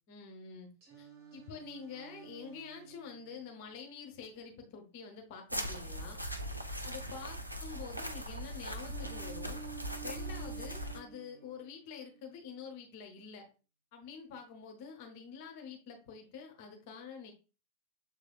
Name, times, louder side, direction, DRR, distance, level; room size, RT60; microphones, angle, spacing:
voice 1, 0.1-0.7 1.0-1.1 1.3-6.2 6.8-9.6 10.0-13.5 13.9-17.3, left 6 dB, 45° left, 4 dB, 0.9 m, -47 dB
Singing, 0.8-4.8 8.8-12.8, right 7 dB, 45° right, 1.5 m, -52 dB
sound 1, 5.5-11.0, equal, 90° right, 0.5 m, -40 dB
6.9 x 3.3 x 2.3 m, 0.34 s
figure-of-eight pair, 90°, 0 cm